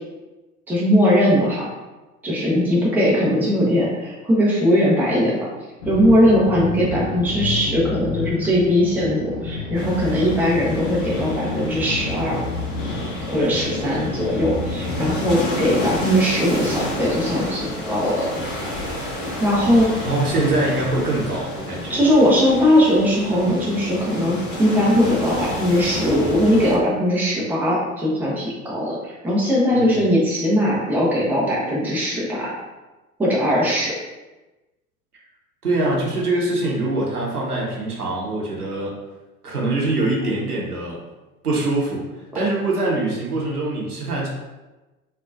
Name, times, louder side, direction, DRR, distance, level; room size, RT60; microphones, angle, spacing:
voice 1, 0.7-1.7 2.2-5.4 5.9-12.5 13.3-18.3 19.4-20.0 21.9-32.5 33.2-33.9 42.3-42.4, equal, 5° right, -5 dB, 0.6 m, -19 dB
sound 1, 5.8-15.4, left 3 dB, 50° left, 0.7 m, -30 dB
sound 2, 9.7-26.8, left 1 dB, 25° left, 1.0 m, -30 dB
voice 2, 20.1-22.0 29.7-30.0 35.6-38.9 39.4-41.0 41.4-42.1 42.3-44.3, right 2 dB, 85° right, -3 dB, 0.8 m, -23 dB
3.7 x 2.4 x 2.4 m, 1.1 s
figure-of-eight pair, 85°, 45 cm